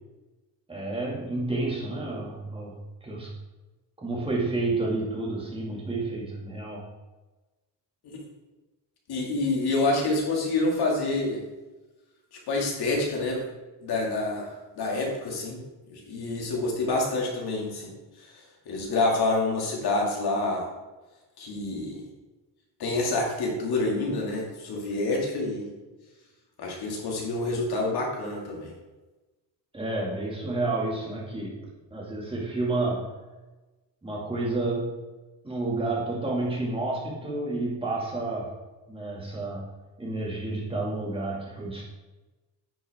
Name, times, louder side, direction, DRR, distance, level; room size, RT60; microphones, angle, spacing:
voice 1, 0.7-3.3 4.0-6.9 29.7-31.6 31.9-33.1 34.0-35.0 35.4-38.5 38.9-39.7 40.0-41.9, right 2 dB, 15° right, -4 dB, 2.4 m, -30 dB
voice 2, 9.1-11.4 12.5-13.5 13.8-15.6 15.9-17.9 18.7-20.7 21.4-22.0 22.8-25.7 26.6-28.7, left 2 dB, 60° left, -1 dB, 2.5 m, -27 dB
10.5 x 6.3 x 3.7 m, 1.1 s
cardioid pair, 145°, 42 cm